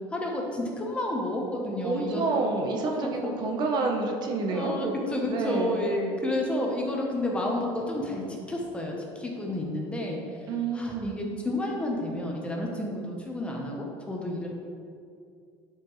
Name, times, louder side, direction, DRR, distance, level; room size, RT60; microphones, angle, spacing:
voice 1, 0.1-2.4 3.0-3.3 4.5-10.5 10.7-14.5, left 1 dB, 10° left, -1 dB, 0.9 m, -31 dB
voice 2, 1.8-5.0 5.3-5.8 10.5-11.3, right 3 dB, 40° right, 2 dB, 0.9 m, -29 dB
10.5 x 5.0 x 3.2 m, 2.4 s
cardioid pair, 150°, 11 cm